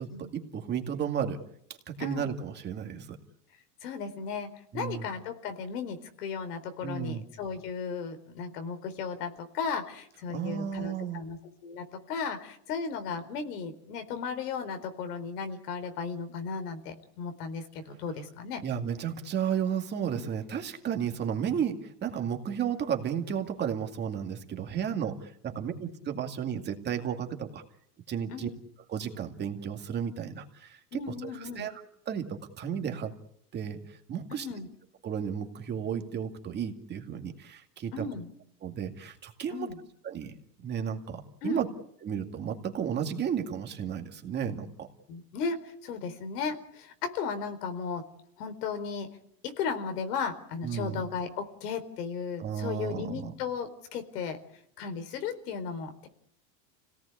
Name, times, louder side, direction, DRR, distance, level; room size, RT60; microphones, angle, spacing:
voice 1, 0.0-1.4 1.9-3.2 4.7-5.1 6.8-7.2 10.3-11.2 18.6-27.6 28.1-28.5 28.9-31.8 32.1-33.1 33.5-34.5 35.0-38.1 38.6-39.7 40.0-41.7 42.0-44.9 50.6-51.1 52.4-53.3, right 8 dB, 20° right, 4 dB, 2.2 m, -33 dB
voice 2, 2.0-2.3 3.8-4.5 4.7-18.6 20.1-20.2 28.3-28.5 30.9-31.7 34.3-34.7 37.9-38.3 39.5-39.8 41.4-41.6 45.1-48.0 48.4-49.1 49.4-54.4 54.8-56.1, left 5 dB, 85° left, 8 dB, 4.4 m, -35 dB
29.5 x 18.0 x 8.4 m, 0.71 s
supercardioid pair, 170°, 45 cm